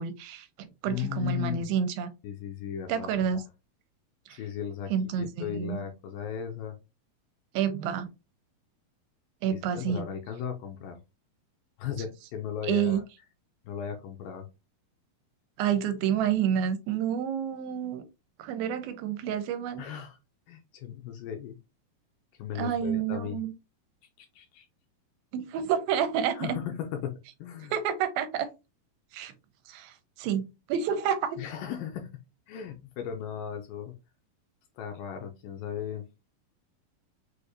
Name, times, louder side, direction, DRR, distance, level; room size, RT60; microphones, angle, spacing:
voice 1, 0.0-2.1 2.9-3.4 4.3-4.4 4.9-5.8 7.5-8.1 9.4-10.0 12.7-13.0 15.6-18.0 18.4-19.8 22.6-23.5 25.3-26.6 27.7-28.5 29.1-29.3 29.7-31.4, right 8 dB, 85° right, 2.4 m, -29 dB
voice 2, 0.8-1.7 2.2-3.4 4.3-4.9 5.2-6.8 9.5-11.0 11.8-13.0 13.7-14.5 19.8-20.2 20.5-21.6 22.4-23.4 24.2-24.7 26.3-27.7 31.4-32.1 32.5-33.9 34.8-36.0, left 9 dB, 80° left, 2.2 m, -36 dB
6.3 x 2.6 x 2.6 m
omnidirectional pair, 4.2 m